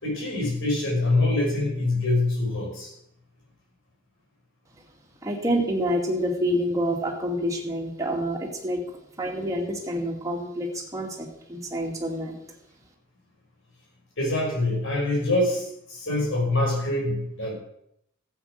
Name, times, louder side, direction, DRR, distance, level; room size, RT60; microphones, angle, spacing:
voice 1, 0.0-2.9 14.2-17.5, left 2 dB, 60° left, -2 dB, 5.8 m, -25 dB
voice 2, 5.2-8.8 9.2-12.3, equal, 15° right, -1 dB, 2.4 m, -27 dB
13.0 x 8.4 x 6.6 m, 0.74 s
head